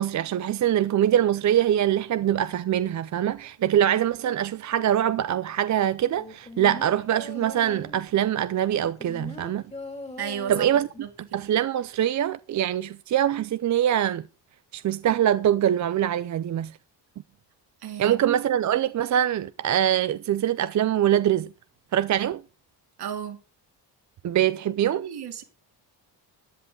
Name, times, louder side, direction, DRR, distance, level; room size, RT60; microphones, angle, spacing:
voice 1, 0.0-9.6 10.5-10.9 11.3-14.2 14.7-16.7 18.0-21.5 21.9-22.4 24.2-25.0, right 11 dB, 45° right, 0.5 m, -23 dB
sound 1, 6.2-8.1 8.7-11.1 11.4-11.5, left 2 dB, 15° left, 2.4 m, -40 dB
voice 2, 10.2-10.7 11.0-11.5 17.8-18.2 23.0-23.4 24.9-25.4, right 9 dB, 65° right, 2.6 m, -34 dB
14.0 x 10.5 x 3.7 m
wide cardioid pair, 160°, 41 cm